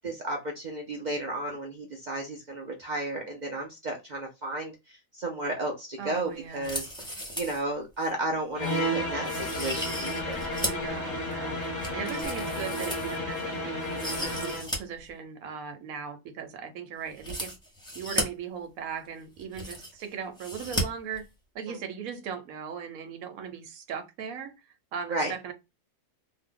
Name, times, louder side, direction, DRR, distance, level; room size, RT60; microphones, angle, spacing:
voice 1, 0.0-10.4 21.7-21.8 25.1-25.3, right 2 dB, 55° right, 0.5 m, -33 dB
voice 2, 6.0-6.8 10.7-11.6 11.9-13.8 14.2-17.5 17.9-21.2 21.5-24.5 24.9-25.5, right 7 dB, 85° right, 1.1 m, -38 dB
sound 1, 6.5-7.6 8.0-8.1 8.6-8.8 9.2-10.9 11.3-13.4 13.8-14.8 15.1-15.2 17.1-18.2 19.0-19.1 19.3-20.0 20.4-20.8 21.1-21.2, equal, 5° left, 0.7 m, -35 dB
sound 2, 8.5-14.7, left 1 dB, 40° left, 0.7 m, -32 dB
2.7 x 2.1 x 3.6 m
omnidirectional pair, 1.4 m